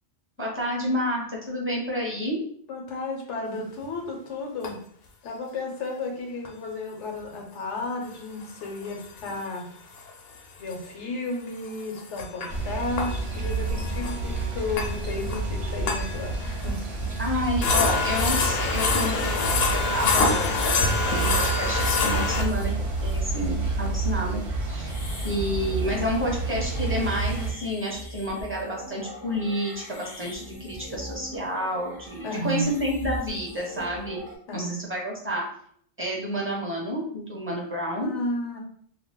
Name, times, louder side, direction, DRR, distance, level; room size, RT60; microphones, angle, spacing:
voice 1, 0.4-2.4 17.2-20.6 21.1-24.9 25.2-34.2 34.5-35.4 36.0-38.1, equal, 15° right, -2 dB, 0.7 m, -29 dB
voice 2, 2.7-4.8 5.2-9.7 10.6-16.8 32.2-32.7 34.5-34.8 38.0-38.6, left 2 dB, 85° left, 1 dB, 1.0 m, -33 dB
sound 1, 3.8-3.9 4.6-4.7 6.5-6.6 8.4-9.6 10.0-10.1 10.4-10.5 10.7-10.8 11.7-16.8 17.2-17.3 17.6-22.7, left 3 dB, 65° left, 0.8 m, -27 dB
sound 2, 12.5-27.5, right 3 dB, 60° right, 0.8 m, -29 dB
sound 3, 24.8-34.4, equal, 30° left, 0.5 m, -41 dB
2.4 x 2.2 x 3.5 m, 0.62 s
omnidirectional pair, 1.2 m